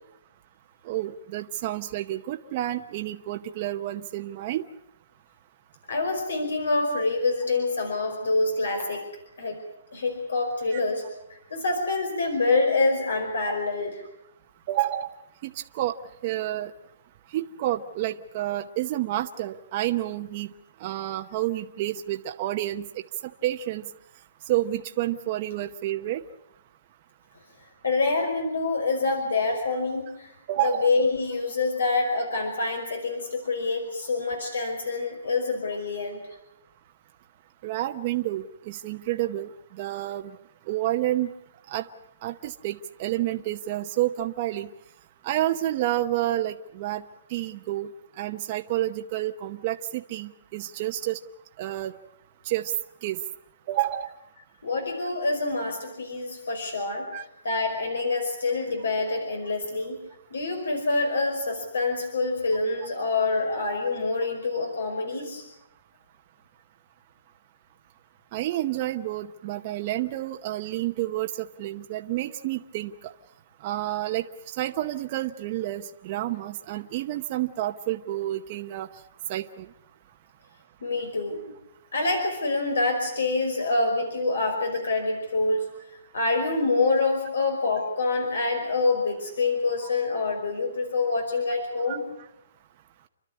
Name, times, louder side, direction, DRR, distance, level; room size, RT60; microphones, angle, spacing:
voice 1, 0.8-4.6 14.7-15.1 15.4-15.9 16.2-16.7 17.3-20.5 20.8-22.9 23.4-23.9 24.5-26.2 30.5-30.9 37.6-39.5 39.8-40.3 40.7-41.3 41.7-41.9 42.2-44.7 45.2-47.0 47.3-47.9 48.2-51.2 51.6-51.9 52.4-52.7 53.0-53.2 53.7-54.1 57.1-57.2 68.3-73.1 73.6-78.9 79.3-79.7 91.9-92.0, right 14 dB, 35° right, 5 dB, 0.8 m, -29 dB
voice 2, 5.9-9.1 9.4-9.6 9.9-11.0 11.3-14.0 27.8-30.3 30.6-36.2 54.6-57.1 57.4-60.0 60.3-65.4 80.8-81.4 81.9-85.7 86.1-92.0, left 3 dB, 90° left, 5 dB, 5.2 m, -26 dB
29.0 x 12.5 x 9.7 m, 0.84 s
hypercardioid pair, 160°, 0 cm